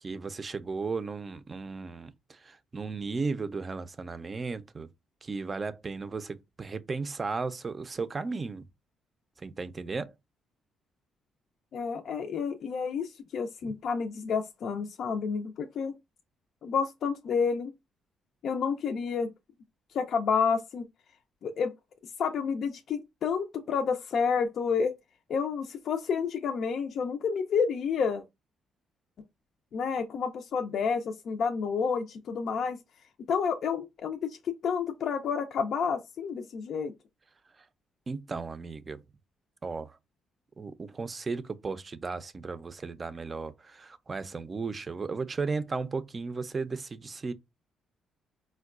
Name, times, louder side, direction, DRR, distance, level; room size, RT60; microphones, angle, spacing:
voice 1, 0.0-4.9 5.2-8.6 9.4-10.1 13.6-13.7 38.1-39.0 39.6-40.0 40.6-47.3, right 4 dB, 35° right, 0.4 m, -35 dB
voice 2, 11.7-15.9 16.6-17.7 18.4-19.3 19.9-20.9 21.4-21.7 22.2-24.9 25.3-28.2 29.7-32.8 33.3-36.9, left 6 dB, 65° left, 0.4 m, -30 dB
4.5 x 2.2 x 2.4 m
cardioid pair, 90°, 0 cm